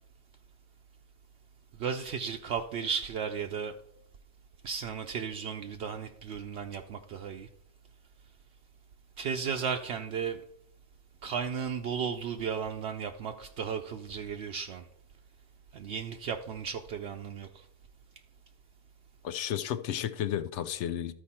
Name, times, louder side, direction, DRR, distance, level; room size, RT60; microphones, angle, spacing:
voice 1, 1.8-3.7 4.6-7.5 9.2-10.4 11.2-14.8 15.7-17.7, right 6 dB, 70° right, 0.8 m, -35 dB
voice 2, 19.2-21.1, left 10 dB, 75° left, 0.9 m, -32 dB
13.0 x 4.8 x 4.2 m
omnidirectional pair, 1.2 m